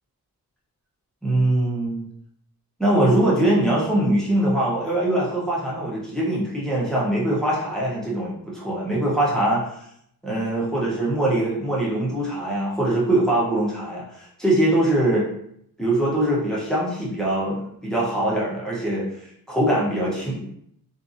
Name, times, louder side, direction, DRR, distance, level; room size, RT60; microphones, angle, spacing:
voice 1, 1.2-2.0 2.8-9.6 10.2-15.3 15.8-19.1 19.5-20.4, right 1 dB, ahead, -6 dB, 0.7 m, -22 dB
2.7 x 2.5 x 2.5 m, 0.71 s
wide cardioid pair, 130°, 36 cm